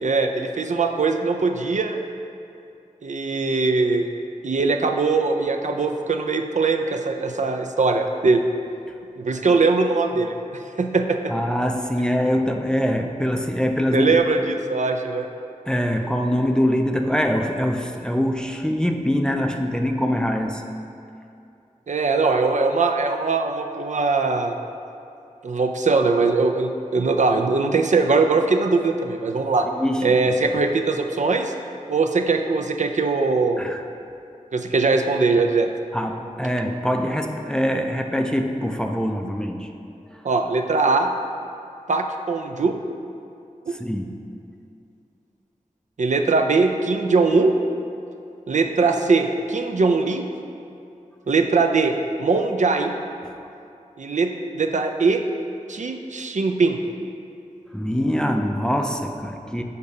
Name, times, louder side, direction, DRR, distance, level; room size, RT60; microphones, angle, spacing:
voice 1, 0.0-2.0 3.0-4.1 4.4-8.5 9.2-11.3 13.9-15.3 21.9-24.6 25.4-29.7 30.0-31.5 31.9-33.6 34.5-35.7 40.2-41.1 41.9-42.7 43.7-43.8 46.0-47.5 48.5-50.2 51.3-53.0 54.0-55.2 55.7-56.8, right 3 dB, 60° right, 4 dB, 0.4 m, -21 dB
voice 2, 11.3-14.1 15.7-20.6 29.6-30.1 33.6-33.8 35.9-39.7 40.1-40.2 43.8-44.2 53.2-53.3 57.7-59.6, equal, 5° left, 4 dB, 0.4 m, -23 dB
6.7 x 2.7 x 5.2 m, 2.6 s
wide cardioid pair, 45°, 14 cm